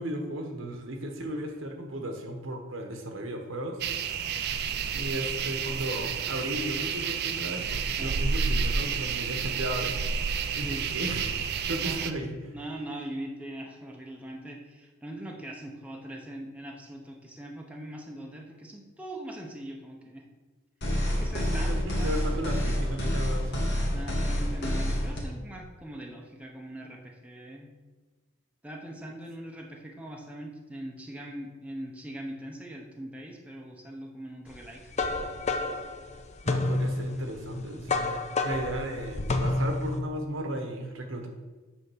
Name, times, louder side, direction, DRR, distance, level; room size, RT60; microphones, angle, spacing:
voice 1, 0.0-3.8 4.9-9.9 10.5-11.4 11.7-12.5 21.5-23.7 36.4-41.3, right 1 dB, 70° right, 3 dB, 1.1 m, -35 dB
sound 1, 3.8-12.1, right 6 dB, 55° right, 0.5 m, -30 dB
voice 2, 11.8-12.2 12.5-20.3 21.0-22.1 23.9-27.7 28.6-34.9 35.2-35.4, right 1 dB, 5° right, 0 dB, 0.8 m, -41 dB
sound 2, 20.8-25.2, equal, 55° left, 1.7 m, -28 dB
sound 3, 34.5-40.0, left 2 dB, 35° left, 0.6 m, -29 dB
8.2 x 3.6 x 6.2 m, 1.3 s
head